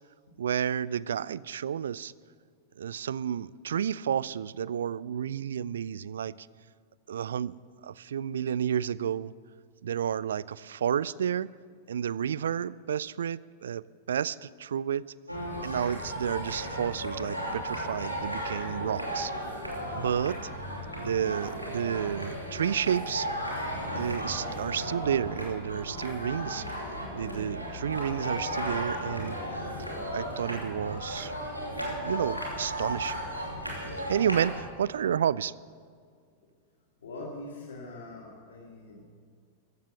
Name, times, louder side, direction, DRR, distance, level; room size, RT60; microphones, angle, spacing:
voice 1, 0.4-2.1 2.8-6.5 7.1-9.3 9.8-11.5 11.9-15.1 15.6-19.6 19.9-20.5 21.0-23.3 23.9-29.4 30.1-31.3 31.8-33.2 34.1-35.5, right 9 dB, 65° right, 21 dB, 0.3 m, -31 dB
sound 1, 15.3-34.6, equal, 90° right, 2.8 m, -35 dB
voice 2, 37.0-39.0, left 2 dB, 65° left, -2 dB, 2.3 m, -42 dB
14.5 x 12.5 x 6.9 m, 2.1 s
figure-of-eight pair, 90°, 0 cm